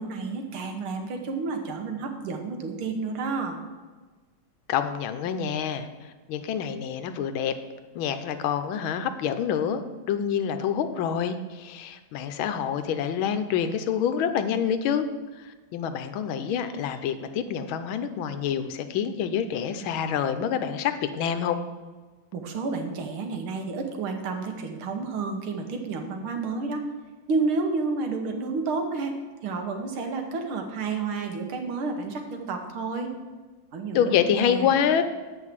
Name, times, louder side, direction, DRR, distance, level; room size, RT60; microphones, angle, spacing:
voice 1, 0.0-3.6 22.3-26.8 27.3-29.1 29.4-33.1 33.7-34.7, right 4 dB, 90° right, 4 dB, 2.0 m, -30 dB
voice 2, 4.7-5.9 6.3-7.5 7.9-9.8 10.1-15.0 15.7-21.6 33.9-35.0, left 8 dB, 80° left, 9 dB, 1.5 m, -27 dB
8.1 x 5.6 x 7.4 m, 1.3 s
omnidirectional pair, 2.2 m